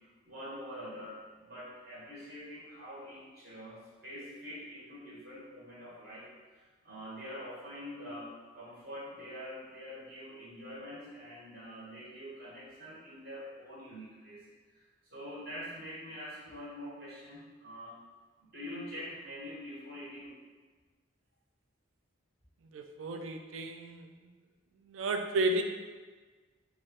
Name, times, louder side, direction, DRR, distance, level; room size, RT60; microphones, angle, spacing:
voice 1, 0.0-14.4 14.7-17.9 18.4-20.3, equal, 50° right, -8 dB, 1.2 m, -45 dB
voice 2, 22.7-24.1 24.8-25.6, right 2 dB, 80° right, 5 dB, 0.4 m, -32 dB
3.4 x 2.4 x 4.0 m, 1.4 s
head